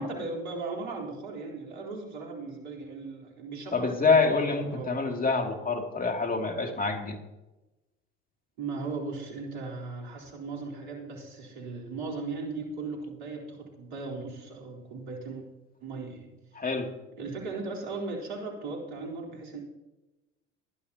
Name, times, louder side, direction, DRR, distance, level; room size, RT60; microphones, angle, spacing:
voice 1, 0.0-4.4 4.6-4.9 8.6-15.4 15.8-16.3 17.2-19.6, right 3 dB, 70° right, 0 dB, 3.9 m, -37 dB
voice 2, 3.7-7.2 16.6-16.9, left 4 dB, 25° left, 4 dB, 2.5 m, -26 dB
20.5 x 11.5 x 2.9 m, 1.0 s
hypercardioid pair, 70°, 36 cm